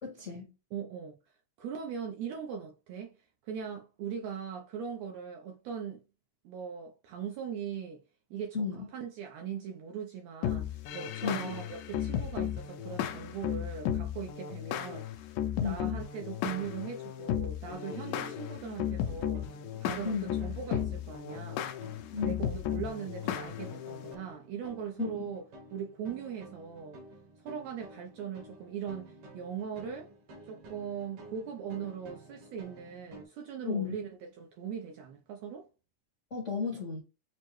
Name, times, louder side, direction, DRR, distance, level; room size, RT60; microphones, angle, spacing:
voice 1, 0.0-0.5 8.5-8.9 11.2-11.5 15.6-16.0 20.0-20.3 22.1-22.5 25.0-25.3 33.7-34.0 36.3-37.0, left 5 dB, 50° left, 0.9 m, -34 dB
voice 2, 0.7-1.1 1.6-3.1 3.4-6.0 6.4-8.0 8.3-8.6 8.9-15.3 15.6-21.7 22.2-25.4 25.7-27.0 27.4-30.1 30.5-34.1 34.4-35.7, right 7 dB, 75° right, 1.6 m, -40 dB
sound 1, 10.4-24.1, left 10 dB, 80° left, 2.0 m, -35 dB
sound 2, 19.1-33.3, right 1 dB, 60° right, 1.7 m, -51 dB
6.3 x 2.1 x 3.0 m
omnidirectional pair, 3.6 m